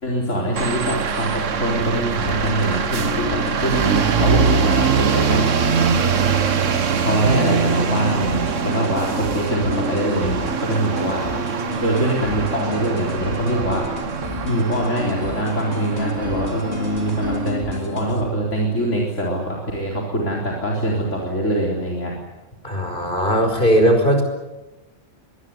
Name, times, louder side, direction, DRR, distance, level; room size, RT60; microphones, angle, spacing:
voice 1, 0.0-5.5 7.0-11.2 11.8-13.8 14.4-22.1, right 1 dB, 75° left, -2 dB, 4.4 m, -23 dB
sound 1, 0.6-17.5, right 6 dB, 80° right, 1.6 m, -23 dB
sound 2, 2.2-18.2, left 1 dB, 60° left, 3.9 m, -31 dB
voice 2, 22.6-24.2, equal, 45° left, 6 dB, 5.4 m, -18 dB
24.0 x 20.5 x 9.6 m, 1.1 s
omnidirectional pair, 1.3 m